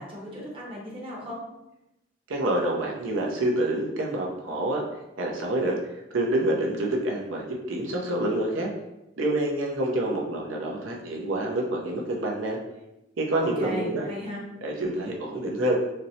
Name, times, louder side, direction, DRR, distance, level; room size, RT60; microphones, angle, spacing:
voice 1, 0.0-1.4 13.4-14.4, equal, 30° right, -3 dB, 0.7 m, -36 dB
voice 2, 2.3-4.8 5.2-5.8 6.1-8.7 9.2-12.6 13.2-14.1 14.6-15.8, right 1 dB, 85° right, -1 dB, 0.6 m, -27 dB
4.1 x 2.0 x 2.6 m, 0.92 s
head